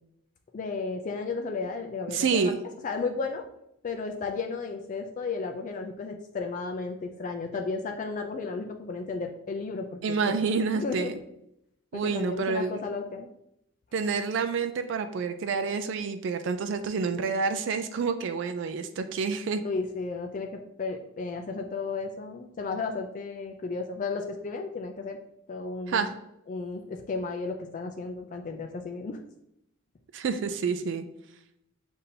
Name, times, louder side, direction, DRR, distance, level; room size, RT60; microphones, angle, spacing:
voice 1, 0.5-2.5 2.8-3.5 3.8-11.1 11.9-13.3 19.6-25.2 25.5-26.1 26.5-29.2, left 4 dB, 40° left, 4 dB, 0.3 m, -34 dB
voice 2, 2.1-2.6 10.0-11.1 11.9-12.8 13.9-19.6 25.9-26.1 30.1-31.0, right 5 dB, 60° right, 8 dB, 0.3 m, -28 dB
6.8 x 2.7 x 2.7 m, 0.79 s
head